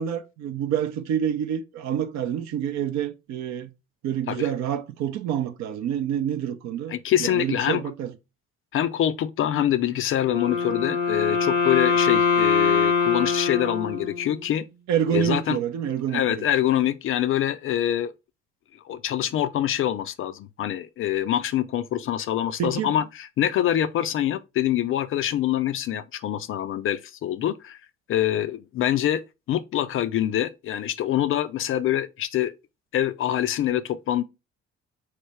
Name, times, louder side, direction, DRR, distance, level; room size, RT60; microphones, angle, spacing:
voice 1, 0.0-3.7 4.0-8.1 14.9-16.5 22.6-22.9, right 9 dB, 55° right, 0.6 m, -27 dB
voice 2, 6.9-7.8 8.7-14.6 15.1-15.6 16.1-18.1 18.7-27.8 28.1-29.2 29.5-32.5 32.9-34.2, left 11 dB, 40° left, 0.4 m, -25 dB
Wind instrument woodwind instrument, 10.3-14.5, left 6 dB, 90° left, 0.7 m, -23 dB
4.3 x 3.2 x 3.2 m
figure-of-eight pair, 45°, 34 cm